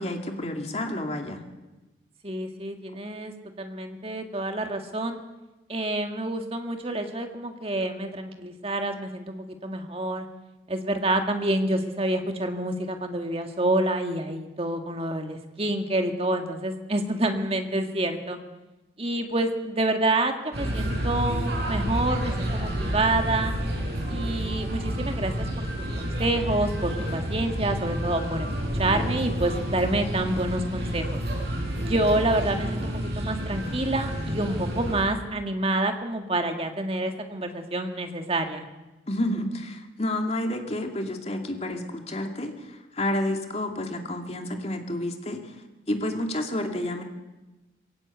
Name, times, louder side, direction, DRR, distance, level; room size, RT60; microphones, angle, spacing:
voice 1, 0.0-1.4 39.1-45.5 45.9-47.0, left 1 dB, 35° left, 4 dB, 2.4 m, -30 dB
voice 2, 2.2-5.2 5.7-10.3 10.7-18.4 19.0-23.5 24.1-25.7 26.0-28.5 28.7-31.2 31.8-38.6, right 1 dB, 30° right, 5 dB, 2.0 m, -28 dB
sound 1, 20.5-35.0, equal, 60° right, 7.1 m, -29 dB
22.0 x 17.5 x 8.2 m, 1.1 s
head